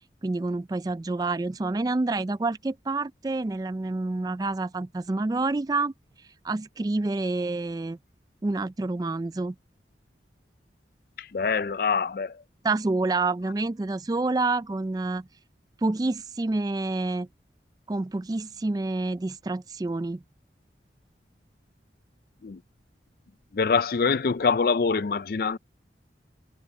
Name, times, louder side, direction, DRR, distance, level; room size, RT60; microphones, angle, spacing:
voice 1, 0.2-5.9 6.4-8.0 8.4-9.6 12.6-15.3 15.8-17.3 17.9-20.2, right 3 dB, 20° right, 0.3 m, -28 dB
voice 2, 11.2-12.4 22.4-22.6 23.5-25.6, left 5 dB, 55° left, 0.4 m, -25 dB
head